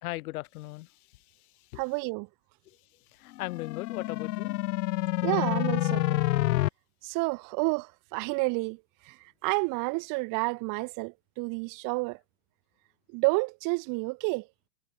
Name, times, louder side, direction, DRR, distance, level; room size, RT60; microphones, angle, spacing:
voice 1, 0.0-1.8 2.7-2.8 3.1-4.6, left 19 dB, 60° left, 4.2 m, -39 dB
voice 2, 1.8-2.3 5.2-6.2 7.0-8.8 9.1-9.2 9.4-12.2 13.1-14.5, right 29 dB, 40° right, 2.0 m, -30 dB
sound 1, 3.4-6.7, left 16 dB, 85° left, 0.9 m, -28 dB
supercardioid pair, 145°, 49 cm